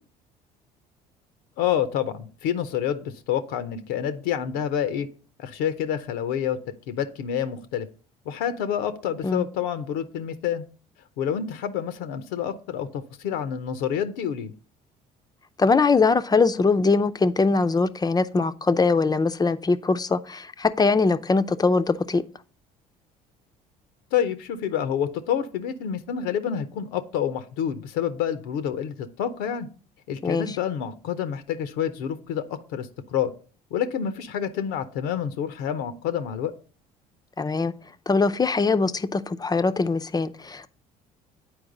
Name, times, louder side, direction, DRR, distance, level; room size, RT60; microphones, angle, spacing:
voice 1, 1.6-5.1 5.4-6.6 6.9-7.9 8.3-10.6 11.2-14.5 24.1-29.7 30.1-33.3 33.7-36.5, left 9 dB, 75° left, 0.6 m, -28 dB
voice 2, 15.6-22.2 30.2-30.5 37.4-37.7 38.1-40.7, left 4 dB, 20° left, 0.5 m, -22 dB
8.6 x 4.6 x 3.8 m
hypercardioid pair, 65°, 19 cm